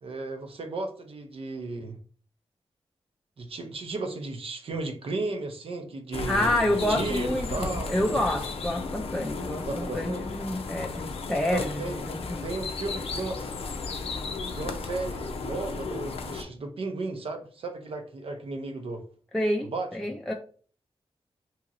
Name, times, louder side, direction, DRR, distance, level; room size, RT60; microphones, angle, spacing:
voice 1, 0.0-2.0 3.4-8.3 9.6-10.3 11.5-12.0 12.4-13.5 14.6-19.0 19.6-20.1, right 3 dB, 65° right, 0.6 m, -35 dB
sound 1, 6.1-16.4, left 4 dB, 75° left, 0.5 m, -34 dB
voice 2, 6.3-11.8 12.1-12.4 19.3-20.3, left 1 dB, 5° left, 0.3 m, -28 dB
2.9 x 2.8 x 2.5 m
cardioid pair, 80°, 10 cm